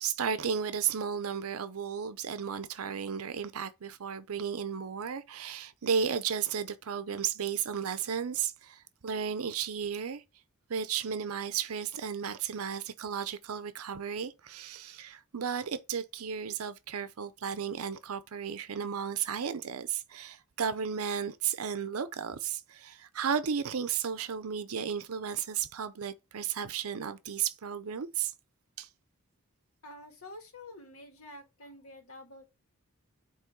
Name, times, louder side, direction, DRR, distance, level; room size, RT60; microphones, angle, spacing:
voice 1, 0.0-10.2 10.7-28.3 28.8-28.9, right 7 dB, 75° right, 0.6 m, -34 dB
voice 2, 29.8-32.4, left 1 dB, 70° left, 1.8 m, -48 dB
8.3 x 3.1 x 4.5 m
head